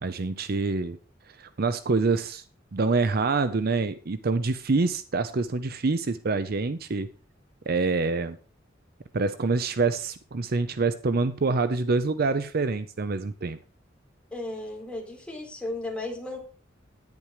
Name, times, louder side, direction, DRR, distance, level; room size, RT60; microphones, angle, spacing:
voice 1, 0.0-1.0 1.4-2.4 2.7-7.1 7.7-8.4 9.1-13.6, right 3 dB, 50° right, 12 dB, 0.6 m, -26 dB
voice 2, 14.3-16.4, left 2 dB, 5° left, -1 dB, 4.1 m, -35 dB
10.5 x 9.6 x 4.9 m, 0.39 s
head